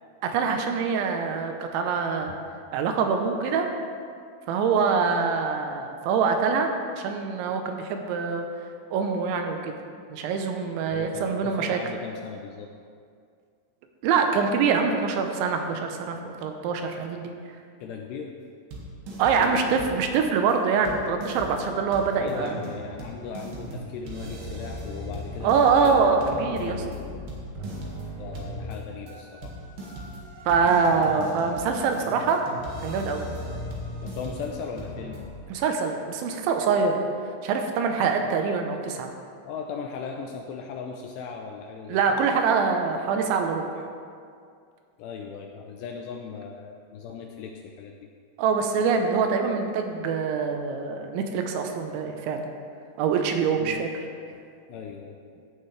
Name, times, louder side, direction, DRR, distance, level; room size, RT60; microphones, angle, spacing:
voice 1, 0.2-2.3 2.7-3.7 4.5-6.7 7.0-8.5 8.9-9.7 10.1-11.8 14.0-17.3 19.2-22.6 25.4-26.8 30.5-32.4 32.8-33.3 35.5-37.0 37.4-39.1 41.9-43.7 48.4-52.5 53.0-53.9, right 5 dB, 80° right, 4 dB, 3.1 m, -24 dB
voice 2, 10.9-12.7 17.8-18.4 19.3-19.8 22.2-26.1 26.5-27.2 28.2-29.7 34.0-35.2 38.0-38.1 39.4-42.2 45.0-47.9 53.6-53.8 54.3-54.4 54.7-55.4, left 6 dB, 85° left, 2 dB, 2.5 m, -38 dB
sound 1, 18.7-19.5 19.8-20.2 20.5-20.6 20.8-35.2, equal, 60° right, 3.2 m, -38 dB
15.5 x 10.5 x 3.3 m, 2.3 s
omnidirectional pair, 5.4 m